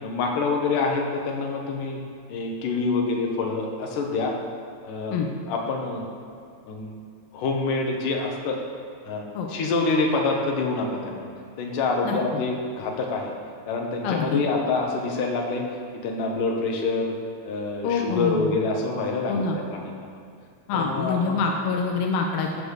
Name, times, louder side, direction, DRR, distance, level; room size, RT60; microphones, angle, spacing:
voice 1, 0.0-2.0 2.3-4.3 4.8-5.2 5.5-6.1 6.7-7.0 7.3-8.6 9.0-9.2 9.5-11.3 11.6-13.3 13.7-15.7 16.0-17.1 17.4-20.1 20.7-21.4, left 3 dB, 70° left, 1 dB, 2.8 m, -26 dB
voice 2, 14.0-14.4 17.8-18.6 19.3-19.6 20.7-22.6, left 5 dB, 85° left, 1 dB, 2.6 m, -25 dB
14.0 x 5.3 x 6.5 m, 2.4 s
omnidirectional pair, 4.0 m